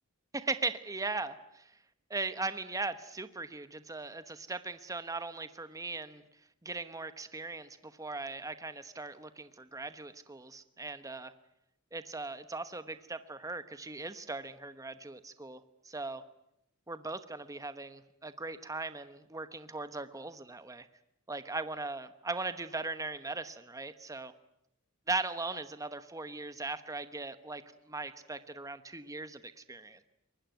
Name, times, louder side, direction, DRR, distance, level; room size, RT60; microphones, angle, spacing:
voice 1, 0.3-1.7 2.1-6.2 6.6-11.3 11.9-15.6 15.8-16.2 16.9-20.9 21.3-24.3 25.1-30.1, right 3 dB, 15° right, 11 dB, 1.1 m, -39 dB
24.0 x 20.0 x 9.2 m, 0.80 s
head